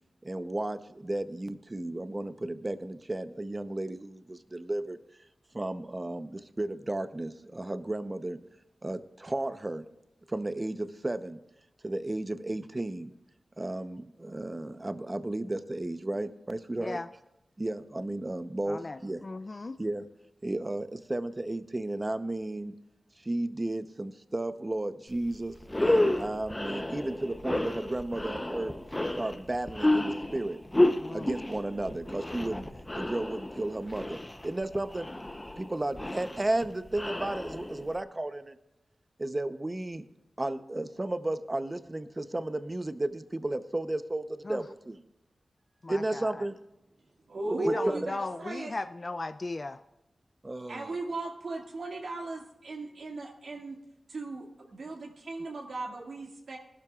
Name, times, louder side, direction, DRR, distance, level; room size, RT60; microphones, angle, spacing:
voice 1, 0.2-5.0 5.5-8.4 8.8-9.8 10.3-11.4 11.8-13.1 13.6-17.0 17.6-19.2 19.8-20.1 20.4-22.7 23.2-28.7 29.1-30.6 31.1-32.7 32.9-35.1 35.6-38.6 39.2-40.0 40.4-45.0 45.9-46.5 47.5-48.0 50.4-50.9, right 2 dB, 25° right, 10 dB, 0.8 m, -33 dB
voice 2, 16.8-17.1 18.7-19.8 31.0-31.3 44.4-44.6 45.8-46.5 47.6-49.8, left 3 dB, 40° left, 10 dB, 0.4 m, -37 dB
sound 1, 25.1-25.3 25.6-38.0, left 1 dB, 15° left, 0.8 m, -31 dB
voice 3, 47.3-48.7 50.7-53.8 54.1-56.6, right 2 dB, 85° right, -1 dB, 2.1 m, -36 dB
20.5 x 12.0 x 2.4 m, 0.92 s
wide cardioid pair, 100°, 0 cm